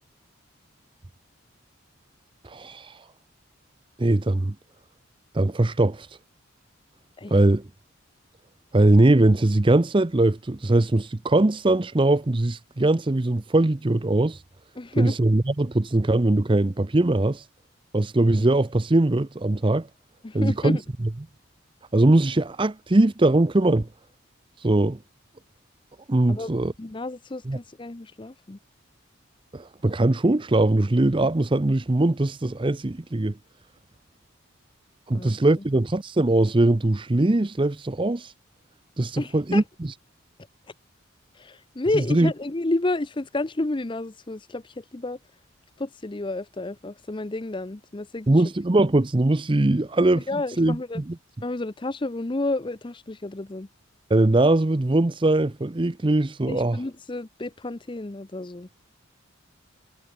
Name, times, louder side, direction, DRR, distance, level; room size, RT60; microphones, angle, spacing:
voice 1, 2.4-3.0 4.0-4.5 5.3-6.1 7.3-7.7 8.7-14.4 15.0-17.5 17.9-19.9 20.3-20.8 21.9-23.9 24.6-25.0 26.1-26.7 27.5-27.6 29.5-33.4 35.1-38.3 39.0-39.6 41.9-42.3 48.3-50.3 50.6-51.0 54.1-56.8, right 2 dB, 25° right, 0.6 m, -21 dB
voice 2, 14.8-15.2 20.2-20.8 26.3-26.5 26.8-28.6 35.1-35.3 39.2-39.6 41.3-45.2 45.8-48.3 50.1-51.0 51.4-53.7 56.5-58.7, left 2 dB, 25° left, 0.6 m, -30 dB
head